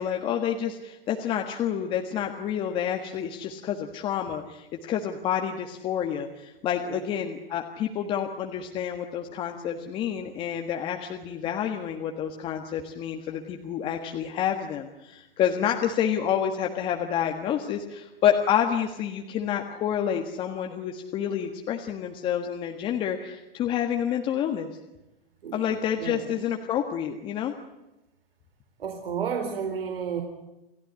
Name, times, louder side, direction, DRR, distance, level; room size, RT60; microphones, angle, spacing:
voice 1, 0.0-24.7 25.5-27.5, left 9 dB, 20° left, 3 dB, 1.6 m, -28 dB
voice 2, 25.4-26.3 28.8-30.2, right 7 dB, 80° right, 4 dB, 4.3 m, -32 dB
29.0 x 16.0 x 9.6 m, 0.99 s
hypercardioid pair, 160°, 29 cm